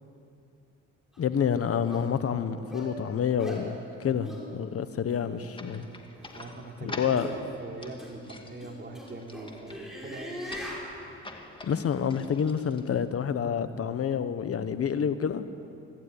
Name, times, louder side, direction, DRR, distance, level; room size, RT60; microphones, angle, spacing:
sound 1, 1.1-1.2 1.9-2.1 2.7-2.9 3.4-3.6 4.2-4.4 5.1-5.2 6.1-6.4 7.2-7.3 8.0-8.1 8.6-10.9, equal, ahead, 7.0 m, -40 dB
voice 1, 1.2-5.9 6.8-7.3 11.6-15.4, left 7 dB, 50° left, 11 dB, 1.2 m, -28 dB
sound 2, 5.5-13.2, left 2 dB, 15° left, 2.1 m, -47 dB
voice 2, 6.3-10.4, right 3 dB, 35° right, 1 dB, 3.3 m, -42 dB
24.5 x 15.5 x 9.9 m, 2.7 s
cardioid pair, 90°, 30 cm